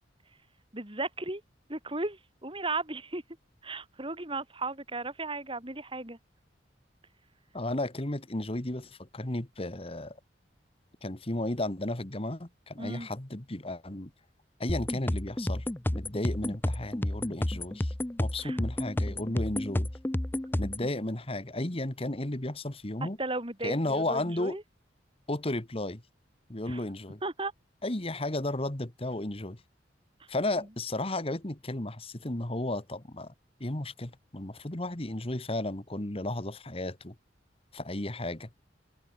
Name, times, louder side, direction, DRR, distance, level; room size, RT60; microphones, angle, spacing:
voice 1, 0.7-1.4 1.7-3.2 3.6-6.2 12.8-13.1 18.4-18.6 23.0-24.6 26.7-26.8 27.2-27.5 30.6-30.7, right 2 dB, 30° right, 4.5 m, -35 dB
voice 2, 7.5-10.2 11.0-14.1 14.6-15.6 15.9-17.9 18.2-19.9 20.6-23.2 23.6-24.6 25.3-26.0 26.5-27.2 27.8-29.6 30.3-33.3 33.6-37.1 37.7-38.5, left 1 dB, 30° left, 1.7 m, -34 dB
sound 1, 14.7-20.9, left 1 dB, 10° left, 0.5 m, -31 dB
head